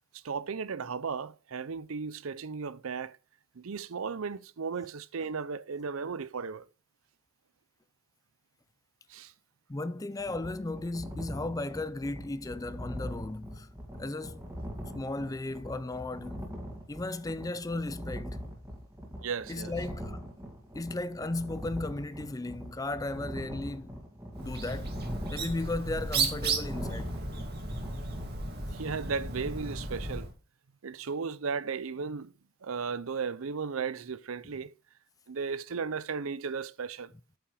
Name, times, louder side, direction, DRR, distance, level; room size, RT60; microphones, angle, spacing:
voice 1, 0.1-3.2 3.6-6.7 9.1-9.3 19.2-19.7 28.7-30.3 30.8-32.3 32.6-34.7 35.3-37.1, right 5 dB, 80° right, 0.6 m, -35 dB
voice 2, 9.7-13.7 14.0-14.4 14.9-16.5 16.9-18.4 19.5-20.2 20.7-24.0 24.4-24.9 25.3-27.2, left 2 dB, 15° left, 0.4 m, -35 dB
sound 1, 10.2-28.3, equal, 15° right, 2.1 m, -42 dB
Bird, 24.3-30.3, right 3 dB, 50° right, 2.2 m, -34 dB
8.6 x 5.9 x 5.0 m
head